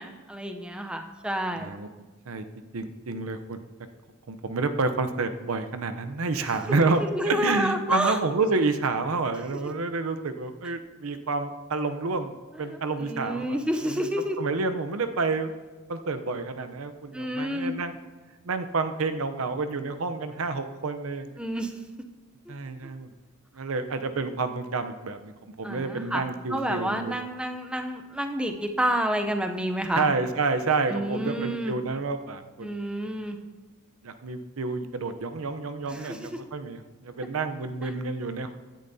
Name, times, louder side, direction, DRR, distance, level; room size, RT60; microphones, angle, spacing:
voice 1, 0.0-1.7 6.4-6.6 7.1-8.2 9.5-9.6 12.6-14.4 17.1-17.7 21.4-21.8 22.5-22.6 22.8-22.9 25.6-30.0 30.9-31.7 32.6-33.4 35.9-36.3 37.8-37.9, equal, 5° right, 5 dB, 0.6 m, -29 dB
voice 2, 1.6-1.9 2.3-2.4 2.7-3.6 4.3-13.6 13.8-14.1 14.4-15.5 15.9-18.0 18.4-21.4 22.5-23.1 23.5-27.1 29.9-32.7 33.0-33.2 34.0-38.5, right 3 dB, 80° right, 9 dB, 0.7 m, -29 dB
16.0 x 10.5 x 2.7 m, 1.3 s
head